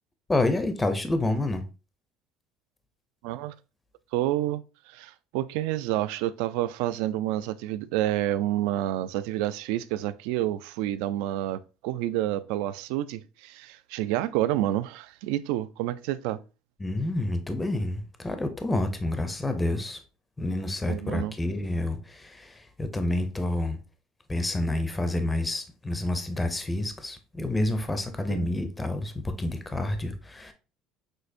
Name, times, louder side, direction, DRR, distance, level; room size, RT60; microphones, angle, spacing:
voice 1, 0.3-1.6 16.8-20.0 20.4-23.8 24.3-30.5, left 2 dB, 10° left, 0.4 m, -28 dB
voice 2, 3.2-3.5 4.1-16.4 20.9-21.3 28.3-28.5, right 14 dB, 85° right, 0.3 m, -29 dB
6.2 x 2.5 x 2.6 m
cardioid pair, 175°, 0 cm